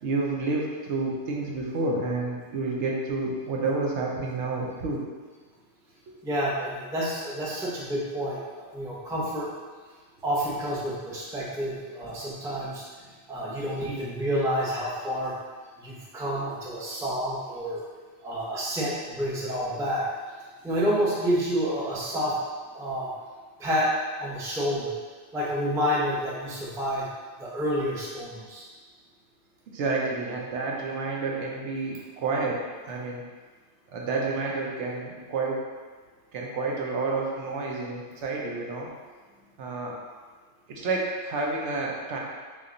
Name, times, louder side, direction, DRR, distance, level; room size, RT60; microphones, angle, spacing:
voice 1, 0.0-5.0 29.7-32.6 32.9-33.2 33.9-35.6 36.3-38.9 39.6-40.0 40.7-42.2, right 3 dB, 75° right, -2 dB, 0.9 m, -29 dB
voice 2, 6.2-9.5 10.2-12.8 13.3-15.3 15.8-17.8 18.2-20.0 20.6-22.4 22.7-23.1 23.6-23.9 24.2-24.9 25.3-27.1 27.4-28.7, equal, 5° right, -6 dB, 0.4 m, -29 dB
3.5 x 2.4 x 3.8 m, 1.5 s
omnidirectional pair, 1.2 m